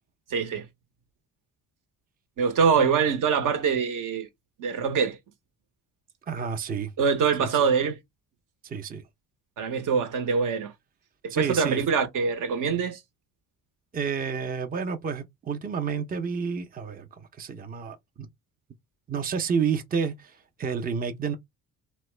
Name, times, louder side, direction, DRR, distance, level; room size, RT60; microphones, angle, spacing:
voice 1, 0.3-0.7 2.4-4.3 4.6-5.2 7.0-8.0 9.6-10.7 11.2-13.0, right 6 dB, 55° right, 0.8 m, -24 dB
voice 2, 6.3-6.9 7.4-7.6 8.6-9.0 11.3-11.8 13.9-18.3 19.1-21.3, right 6 dB, 25° right, 0.5 m, -30 dB
2.9 x 2.1 x 3.1 m
supercardioid pair, 65°, 37 cm